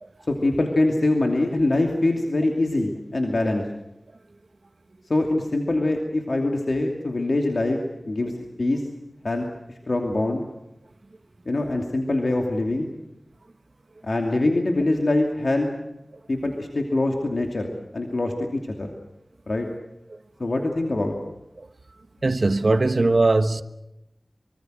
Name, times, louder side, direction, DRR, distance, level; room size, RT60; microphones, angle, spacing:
voice 1, 0.3-3.7 5.1-8.3 8.6-8.8 9.2-9.5 9.9-10.4 11.5-12.9 14.0-15.7 16.3-18.9 19.5-19.7 20.4-21.2, left 2 dB, 60° left, 2.7 m, -24 dB
voice 2, 22.2-23.6, right 2 dB, 55° right, 1.2 m, -20 dB
24.5 x 24.5 x 6.5 m
wide cardioid pair, 75°, 0 cm